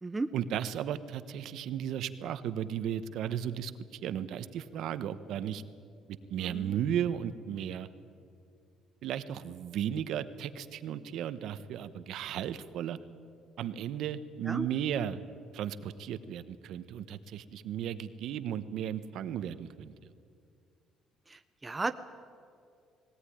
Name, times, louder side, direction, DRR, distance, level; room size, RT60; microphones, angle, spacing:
voice 1, 0.3-5.6 6.1-7.9 9.0-13.0 13.6-15.2 15.5-20.1, right 9 dB, 55° right, 12 dB, 1.0 m, -35 dB
voice 2, 6.5-6.8 14.5-14.7 21.3-21.9, right 3 dB, 10° right, 8 dB, 0.5 m, -34 dB
20.0 x 18.0 x 10.0 m, 2.4 s
cardioid pair, 175°, 0 cm